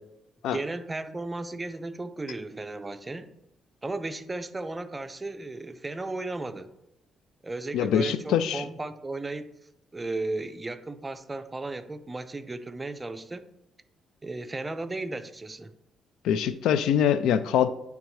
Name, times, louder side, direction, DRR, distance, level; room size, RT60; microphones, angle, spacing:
voice 1, 0.5-3.3 3.8-6.7 7.4-9.5 9.9-13.4 14.2-15.7, right 2 dB, 20° right, 11 dB, 0.5 m, -35 dB
voice 2, 7.7-8.6 16.2-17.7, left 9 dB, 80° left, 14 dB, 0.3 m, -23 dB
10.0 x 3.5 x 3.1 m, 0.87 s
cardioid pair, 75°, 0 cm